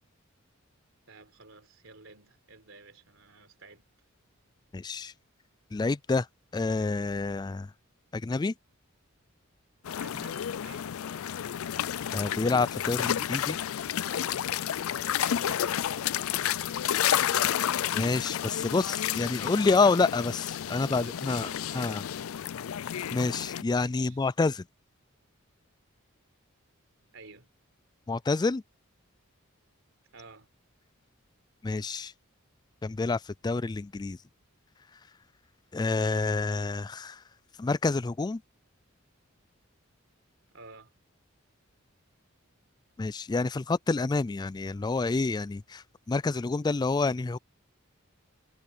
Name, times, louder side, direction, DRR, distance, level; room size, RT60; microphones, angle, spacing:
voice 1, 1.1-3.8 10.0-10.9 15.0-16.8 20.7-22.0 23.7-24.2 27.1-27.5 30.1-30.5 40.5-40.9, right 3 dB, 70° right, 4.2 m, -51 dB
voice 2, 4.7-5.1 5.7-6.3 6.5-7.7 8.1-8.5 12.1-13.6 17.9-22.0 23.1-24.6 28.1-28.6 31.6-32.1 32.8-34.2 35.7-37.2 37.6-38.4 43.0-47.4, left 3 dB, 20° left, 0.3 m, -28 dB
sound 1, 9.8-23.6, left 10 dB, 85° left, 0.4 m, -31 dB
head